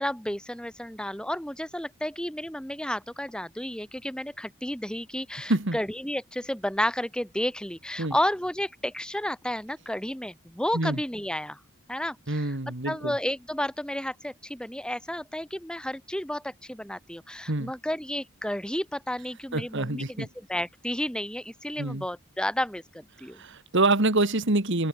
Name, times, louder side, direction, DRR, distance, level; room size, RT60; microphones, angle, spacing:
voice 1, 0.0-11.6 11.9-12.6 12.8-23.4, left 1 dB, 5° left, 1.8 m, -32 dB
voice 2, 12.3-13.2 17.5-17.7 19.5-20.3 21.8-22.1 23.4-24.9, right 2 dB, 55° right, 2.2 m, -26 dB
head